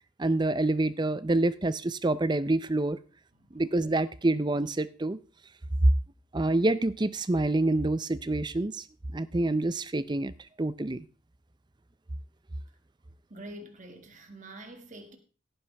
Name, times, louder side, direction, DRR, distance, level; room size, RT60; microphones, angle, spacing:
voice 1, 0.2-3.0 3.5-5.2 6.3-8.8 9.1-10.3 10.6-11.0, right 2 dB, 20° right, 0.5 m, -27 dB
voice 2, 13.3-15.2, right 1 dB, 35° right, 2.0 m, -46 dB
16.5 x 9.9 x 3.4 m
head